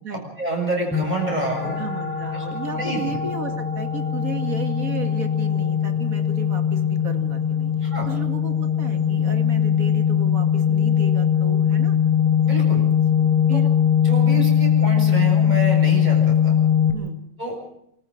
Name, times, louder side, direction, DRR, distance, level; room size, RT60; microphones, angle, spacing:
voice 1, 0.4-1.8 2.3-2.4 2.7-3.2 7.8-8.1 12.4-12.8 13.5-13.6 14.0-16.6 17.4-17.6, right 1 dB, 25° right, 0 dB, 7.4 m, -28 dB
sound 1, 0.9-16.9, left 8 dB, 5° left, 3.2 m, -20 dB
voice 2, 1.8-12.0 12.8-13.7 16.9-17.2, right 4 dB, 55° right, 6 dB, 2.7 m, -34 dB
25.5 x 14.0 x 7.8 m, 0.73 s
omnidirectional pair, 1.8 m